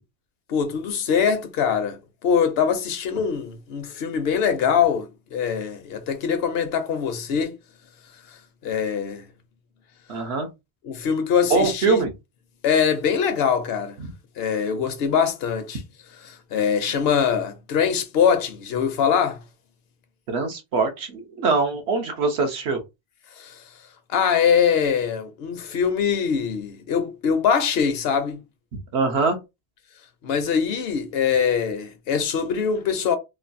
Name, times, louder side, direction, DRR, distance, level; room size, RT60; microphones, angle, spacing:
voice 1, 0.5-7.5 8.6-9.3 10.8-12.0 12.6-14.0 14.4-15.8 16.2-19.4 23.4-23.6 24.1-28.4 30.2-33.2, left 7 dB, 70° left, 0.8 m, -23 dB
voice 2, 10.1-10.5 11.5-12.1 20.3-22.8 28.9-29.4, right 4 dB, 80° right, 1.1 m, -23 dB
3.2 x 2.2 x 2.6 m
omnidirectional pair, 1.1 m